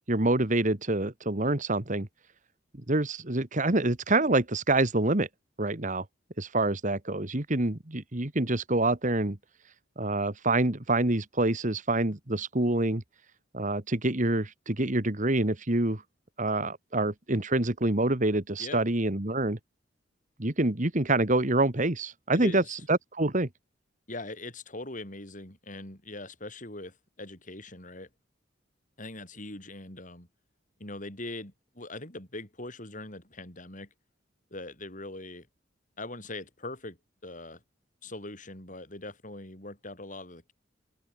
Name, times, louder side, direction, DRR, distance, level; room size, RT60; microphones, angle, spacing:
voice 1, 0.1-2.1 2.9-5.3 5.6-6.0 6.4-9.4 10.0-13.0 13.5-16.0 16.4-19.6 20.4-22.6 22.9-23.5, right 2 dB, 40° right, 2.0 m, -26 dB
voice 2, 22.3-22.8 24.1-28.1 29.0-30.3 30.8-33.9 34.5-35.5 36.0-37.0 37.2-37.6 38.0-40.5, left 2 dB, 45° left, 6.7 m, -41 dB
head